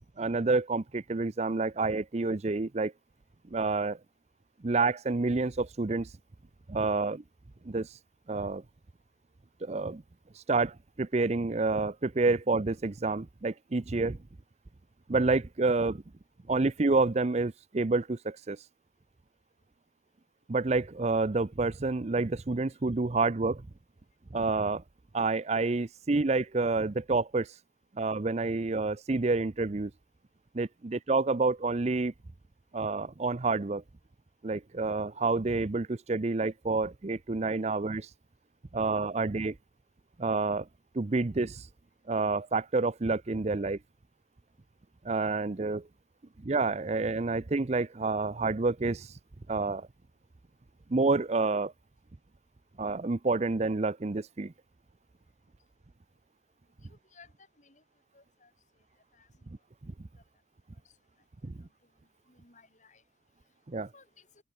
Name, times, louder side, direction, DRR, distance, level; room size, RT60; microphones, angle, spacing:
voice 1, 0.2-2.9 3.5-4.0 4.6-6.1 6.7-7.2 7.7-8.0 8.3-8.6 9.6-10.0 10.4-14.2 15.1-16.0 16.5-18.6 20.5-23.6 24.3-24.8 25.1-27.5 28.0-29.9 30.5-32.1 32.7-33.8 34.4-38.1 38.7-39.5 40.2-40.7 40.9-41.7 42.1-43.8 45.0-45.8 46.4-49.1 49.5-49.9 50.9-51.7 52.8-54.5 61.4-61.5 63.7-63.9, right 3 dB, 35° right, 0.6 m, -28 dB
voice 2, 58.1-58.5 59.1-59.3 62.3-63.0 63.9-64.3, left 4 dB, 40° left, 6.7 m, -58 dB
open air
head